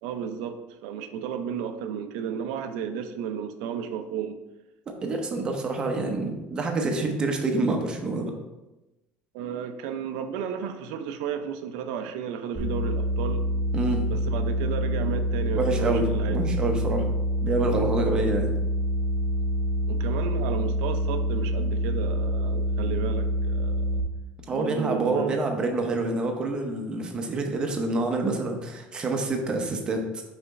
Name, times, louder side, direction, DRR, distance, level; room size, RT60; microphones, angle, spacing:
voice 1, 0.0-4.4 9.3-13.4 14.1-16.5 17.0-17.1 19.9-24.0 24.5-25.5, right 8 dB, 75° right, 8 dB, 0.6 m, -33 dB
voice 2, 5.0-8.3 13.7-14.1 15.5-17.0 17.4-18.5 24.5-30.2, right 2 dB, 20° right, 3 dB, 0.8 m, -27 dB
sound 1, 12.6-24.0, equal, 10° left, 1.0 m, -26 dB
5.6 x 4.3 x 4.1 m, 1.0 s
cardioid pair, 170°, 4 cm